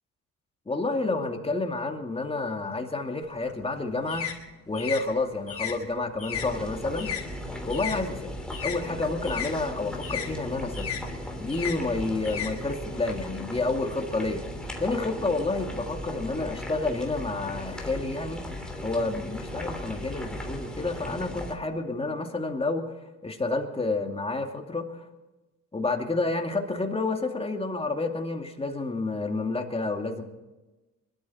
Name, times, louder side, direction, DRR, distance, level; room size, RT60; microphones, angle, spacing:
voice 1, 0.7-4.3 4.7-7.1 7.6-8.3 8.6-10.9 11.4-14.4 14.8-18.4 18.8-22.8 23.2-25.0 25.7-30.2, left 3 dB, 20° left, 3 dB, 2.4 m, -29 dB
sound 1, 3.2-8.0 8.3-13.1, left 9 dB, 55° left, 4.7 m, -36 dB
sound 2, 6.3-21.5, left 1 dB, 5° left, 3.3 m, -37 dB
23.0 x 13.0 x 4.2 m, 1.1 s
cardioid pair, 90°, 30 cm